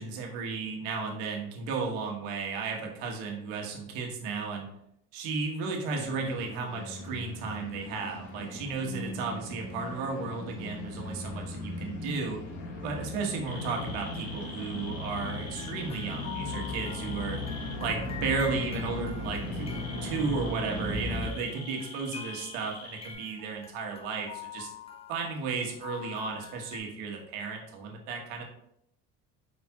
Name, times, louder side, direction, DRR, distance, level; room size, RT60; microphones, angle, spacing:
voice 1, 0.0-4.7 5.1-12.4 12.8-17.4 17.8-24.7 25.1-28.4, right 4 dB, 85° right, 1 dB, 1.3 m, -34 dB
sound 1, 6.0-21.3, left 2 dB, 90° left, 1.4 m, -37 dB
sound 2, 13.5-17.7 19.3-23.1, left 2 dB, 45° left, 1.7 m, -45 dB
sound 3, 15.2-21.0 21.2-26.8, left 6 dB, 20° left, 0.5 m, -46 dB
5.0 x 4.4 x 2.3 m, 0.74 s
cardioid pair, 135°, 33 cm